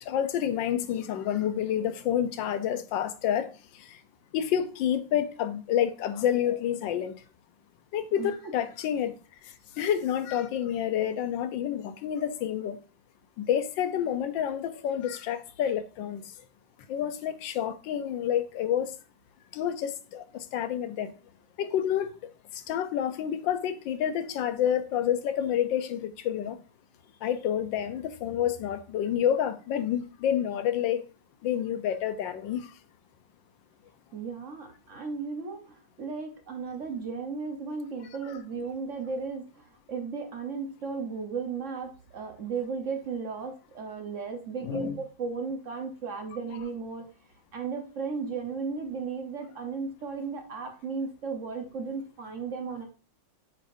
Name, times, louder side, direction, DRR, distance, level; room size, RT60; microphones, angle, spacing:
voice 1, 0.1-3.5 3.8-4.0 4.3-7.2 7.9-9.1 9.8-12.8 13.4-16.3 16.9-18.9 19.5-21.1 21.6-22.1 22.5-26.6 27.2-31.0 31.4-32.7 44.6-45.0, left 10 dB, 90° left, 1.4 m, -29 dB
voice 2, 34.1-47.1 47.5-52.8, right 5 dB, 50° right, 1.1 m, -35 dB
7.6 x 4.9 x 2.6 m
omnidirectional pair, 2.0 m